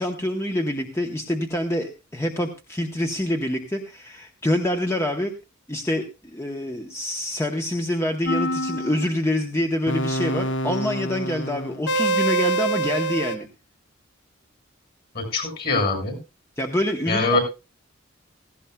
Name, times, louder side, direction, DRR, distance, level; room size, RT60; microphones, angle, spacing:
voice 1, 0.0-5.3 5.7-13.5 16.6-17.4, left 1 dB, 15° left, 4 dB, 0.9 m, -26 dB
sound 1, 8.3-9.1 9.9-13.4, right 2 dB, 65° left, 1.3 m, -26 dB
voice 2, 15.1-16.2 17.1-17.4, left 3 dB, 50° left, 5 dB, 6.7 m, -23 dB
17.0 x 16.0 x 2.3 m, 0.28 s
head